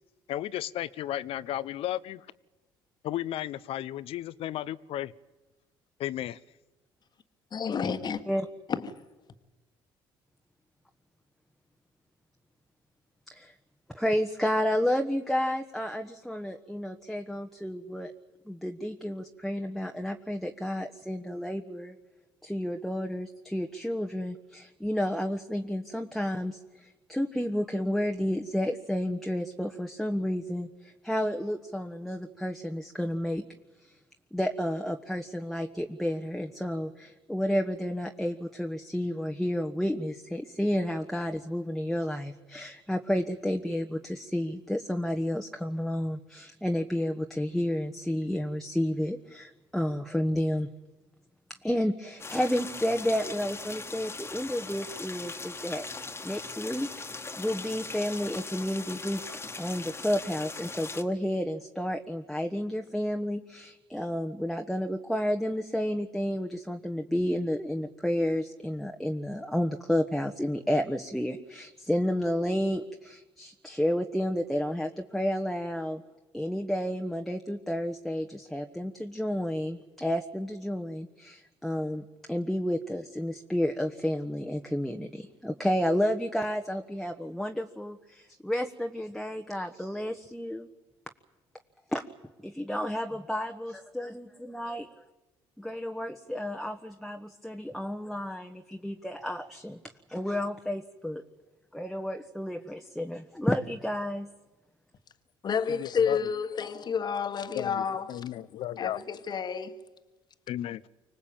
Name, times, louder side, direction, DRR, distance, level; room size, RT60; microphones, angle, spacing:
voice 1, 0.3-2.3 3.0-5.1 6.0-6.4 105.8-106.2 107.5-109.0 110.5-110.8, left 12 dB, 70° left, 0.8 m, -34 dB
voice 2, 7.5-8.2 8.7-8.9 105.4-108.3 108.8-109.8, left 6 dB, 45° left, 1.6 m, -30 dB
voice 3, 13.9-18.1 18.4-22.0 22.4-33.4 33.8-34.0 34.3-50.7 51.5-59.2 59.6-76.0 76.3-90.7 91.9-92.0 92.4-95.0 95.6-99.8 100.1-101.2 101.7-104.3, equal, 5° left, 1.3 m, -31 dB
sound 1, 52.2-61.0, left 3 dB, 25° left, 1.7 m, -40 dB
25.0 x 18.5 x 8.9 m
supercardioid pair, 80°, 10 cm